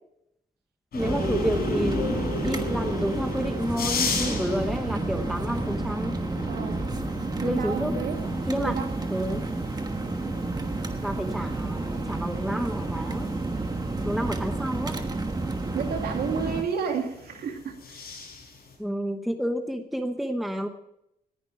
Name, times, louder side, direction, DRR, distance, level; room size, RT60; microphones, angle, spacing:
sound 1, 0.9-18.7, left 3 dB, 85° left, 5.0 m, -36 dB
voice 1, 0.9-2.1 2.4-6.2 7.4-7.9 8.5-8.7 9.1-9.4 11.0-13.3 14.0-14.9 18.8-20.7, equal, ahead, 6 dB, 0.9 m, -30 dB
sound 2, 1.0-16.6, right 2 dB, 25° right, 1.3 m, -30 dB
voice 2, 6.5-6.9 7.4-8.2 8.6-8.9 15.7-18.1, right 6 dB, 85° right, 4 dB, 2.3 m, -31 dB
19.0 x 11.0 x 4.6 m, 0.81 s
wide cardioid pair, 140°, 16 cm